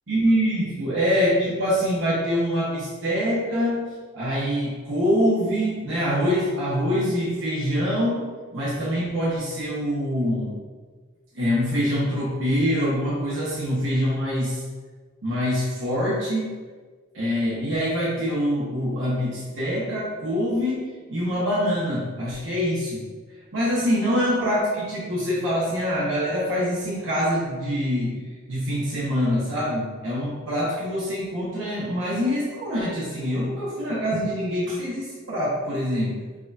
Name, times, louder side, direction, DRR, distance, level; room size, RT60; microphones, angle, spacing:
voice 1, 0.1-10.5 11.3-14.6 15.2-16.5 17.1-23.0 23.5-28.2 28.5-36.2, equal, 70° right, -8 dB, 1.0 m, -25 dB
6.0 x 2.3 x 2.6 m, 1.4 s
head